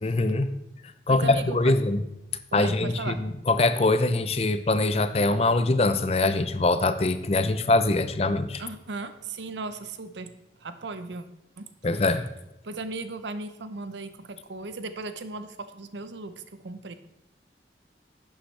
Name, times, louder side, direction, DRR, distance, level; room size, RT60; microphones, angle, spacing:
voice 1, 0.0-0.5 1.1-2.0 2.5-3.1 3.5-8.6 11.8-12.3, left 2 dB, 35° left, 11 dB, 0.5 m, -23 dB
voice 2, 1.1-1.7 2.5-3.2 8.6-10.3 10.6-11.3 11.6-12.1 12.6-16.9, right 3 dB, 90° right, 10 dB, 0.8 m, -37 dB
11.5 x 8.8 x 3.3 m, 0.87 s
head